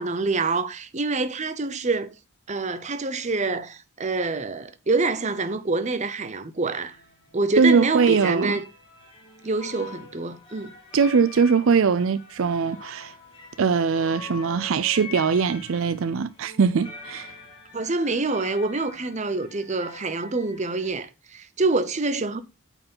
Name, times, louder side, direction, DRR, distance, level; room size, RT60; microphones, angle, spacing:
voice 1, 0.0-2.1 2.5-7.0 7.3-8.6 9.4-10.7 17.7-22.4, right 3 dB, 30° right, 0.7 m, -26 dB
sound 1, 5.4-5.7 6.6-7.4 7.6-20.9, left 4 dB, 20° left, 2.3 m, -44 dB
voice 2, 7.6-8.6 10.9-13.1 13.6-17.3, right 5 dB, 65° right, 0.4 m, -21 dB
8.8 x 4.6 x 5.5 m
head